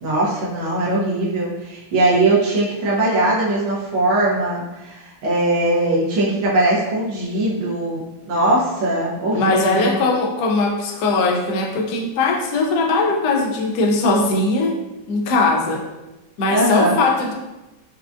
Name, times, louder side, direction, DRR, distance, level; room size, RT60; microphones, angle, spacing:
voice 1, 0.0-10.0 16.5-17.0, right 2 dB, 80° right, -6 dB, 1.7 m, -20 dB
voice 2, 9.3-14.7 15.1-15.8 16.4-17.3, left 3 dB, 80° left, 1 dB, 0.8 m, -20 dB
4.9 x 2.2 x 2.4 m, 1.0 s
omnidirectional pair, 2.3 m